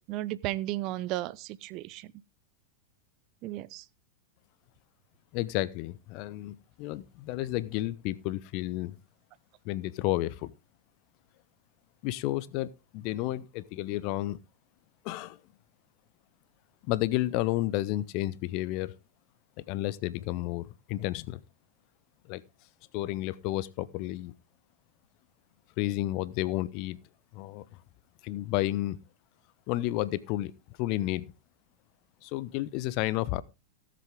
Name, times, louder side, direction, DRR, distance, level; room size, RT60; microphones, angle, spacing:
voice 1, 0.1-2.1 3.4-3.8, right 16 dB, 40° right, 0.6 m, -34 dB
voice 2, 5.3-8.9 9.6-10.5 12.0-14.4 15.0-15.4 16.9-18.9 19.6-21.4 22.3-22.4 22.9-24.3 25.8-27.0 27.3-27.6 28.2-29.0 29.7-30.5 30.8-31.2 32.2-33.4, left 16 dB, 45° left, 0.7 m, -31 dB
17.5 x 7.7 x 3.6 m
figure-of-eight pair, 90°, 0 cm